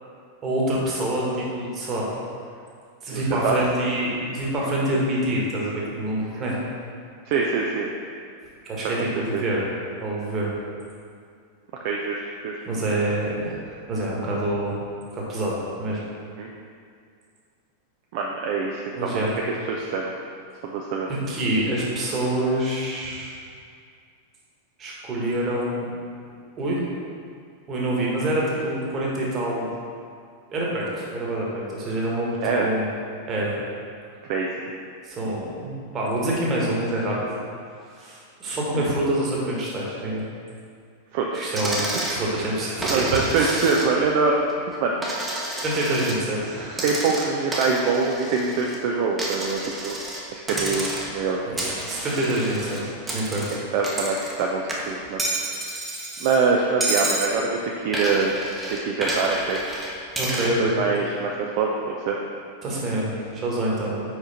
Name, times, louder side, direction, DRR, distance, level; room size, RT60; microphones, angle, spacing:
voice 1, 0.4-2.1 3.0-6.6 8.6-9.6 10.0-10.5 12.6-14.8 15.1-16.0 18.9-19.3 21.3-23.3 24.8-25.9 26.6-26.9 27.7-29.7 30.5-32.9 33.3-33.6 35.0-37.2 37.9-40.3 41.3-43.7 45.6-46.9 51.4-53.6 60.2-60.7 62.6-64.0, right 1 dB, 30° right, -4 dB, 1.5 m, -26 dB
voice 2, 3.1-3.6 6.2-6.4 7.3-7.9 8.8-9.0 9.3-9.4 11.8-12.6 16.4-16.5 18.1-19.3 19.7-20.1 20.6-21.1 32.4-32.7 34.3-34.5 38.7-38.9 41.1-41.6 42.9-44.5 44.8-45.1 46.8-50.0 50.3-51.5 53.5-55.2 56.2-58.3 58.7-59.6 60.6-61.7 62.0-62.2, right 4 dB, 50° right, -1 dB, 0.5 m, -24 dB
Coin (dropping), 41.6-42.2 42.8-44.1 44.5-46.2 46.7-48.8 49.2-50.2 50.5-51.2 51.6-54.4 54.7-56.4 56.8-57.3 57.9-60.5, right 1 dB, 10° right, 0.9 m, -30 dB
4.9 x 4.9 x 4.2 m, 2.2 s
figure-of-eight pair, 90°, 0 cm